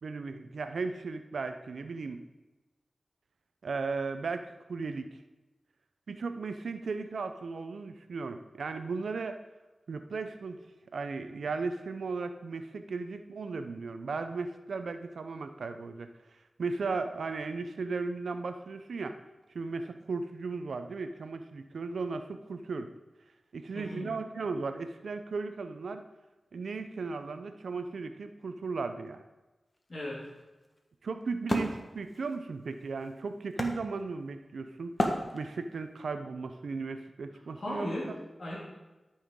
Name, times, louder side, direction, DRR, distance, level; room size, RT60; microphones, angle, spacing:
voice 1, 0.0-2.2 3.6-5.2 6.1-9.4 9.9-10.6 10.9-16.1 16.6-19.2 19.5-22.9 23.5-26.0 26.5-29.2 31.0-34.9 35.3-37.9, right 4 dB, 90° right, 9 dB, 0.5 m, -36 dB
voice 2, 23.7-24.2 29.9-30.3 37.6-38.6, left 1 dB, 60° left, -5 dB, 1.9 m, -37 dB
Wood, 29.7-34.4 35.0-35.8, left 1 dB, 35° left, 1.4 m, -34 dB
13.0 x 5.6 x 3.7 m, 1.1 s
cardioid pair, 45°, 0 cm